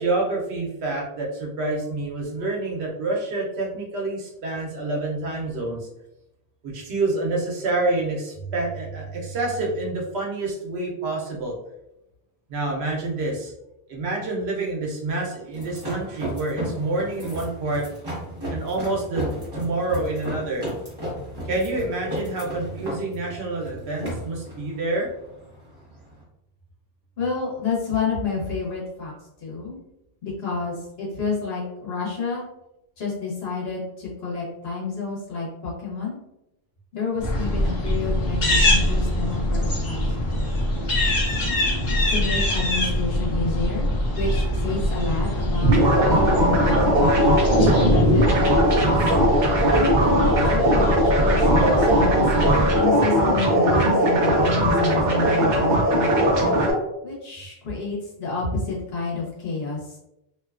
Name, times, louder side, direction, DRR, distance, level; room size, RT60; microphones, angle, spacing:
voice 1, 0.0-5.9 6.6-11.6 12.5-13.5 13.9-17.8 18.5-19.3 19.5-20.7 21.4-25.1, right 2 dB, 85° right, -1 dB, 1.0 m, -27 dB
sound 1, 15.5-26.2, equal, 25° right, 1.0 m, -34 dB
voice 2, 27.2-29.1 29.4-29.8 30.2-32.5 33.0-36.2 36.9-40.4 42.1-43.9 44.2-47.2 47.7-49.0 49.7-56.3 57.0-60.0, left 4 dB, 75° left, -4 dB, 1.2 m, -29 dB
sound 2, 37.2-52.8, left 1 dB, 50° left, 0.8 m, -24 dB
sound 3, 45.6-56.7, right 1 dB, 55° right, 0.7 m, -19 dB
2.7 x 2.3 x 2.3 m, 0.86 s
omnidirectional pair, 1.0 m